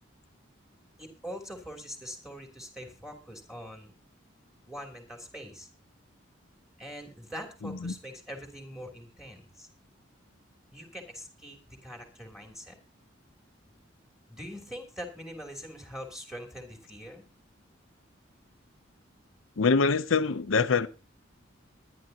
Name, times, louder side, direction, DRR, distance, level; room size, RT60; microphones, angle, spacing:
voice 1, 1.0-3.9 4.7-5.7 6.8-9.7 10.7-11.6 11.8-12.8 14.3-17.2, equal, ahead, 3.0 m, -43 dB
voice 2, 7.6-7.9 19.6-20.9, left 4 dB, 85° left, 0.7 m, -24 dB
21.5 x 11.0 x 2.8 m
head